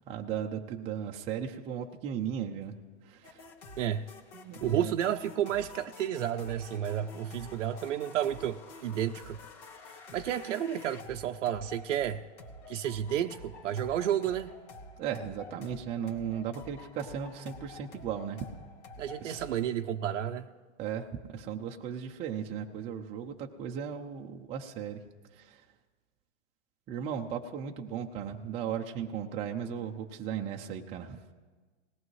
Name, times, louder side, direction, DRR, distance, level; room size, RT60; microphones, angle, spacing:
voice 1, 0.1-2.8 3.0-3.4 4.3-4.9 15.0-18.4 19.2-19.4 20.8-25.0 25.3-25.6 26.9-31.2, right 8 dB, 15° right, 0.5 m, -36 dB
sound 1, 3.2-19.7, left 2 dB, 65° left, 2.0 m, -49 dB
voice 2, 3.8-4.1 4.6-9.4 10.1-12.2 12.7-14.5 19.0-20.5, right 10 dB, 85° right, 0.6 m, -31 dB
19.5 x 17.5 x 3.2 m
hypercardioid pair, 140°, 37 cm